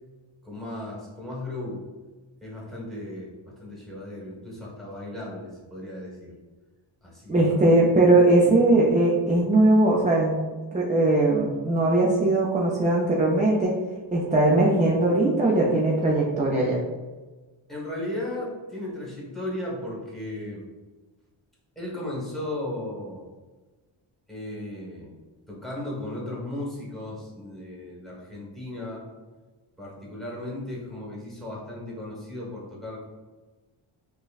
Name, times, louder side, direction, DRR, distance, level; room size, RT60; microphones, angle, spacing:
voice 1, 0.4-1.8 2.4-6.3 7.0-7.8 17.7-20.6 21.8-23.3 24.3-25.2 25.5-29.1 29.8-33.0, left 1 dB, ahead, -5 dB, 1.1 m, -36 dB
voice 2, 7.3-10.4 10.7-13.7 14.1-16.8, right 2 dB, 20° right, -3 dB, 0.3 m, -20 dB
5.5 x 2.1 x 2.3 m, 1.3 s
wide cardioid pair, 125°, 50 cm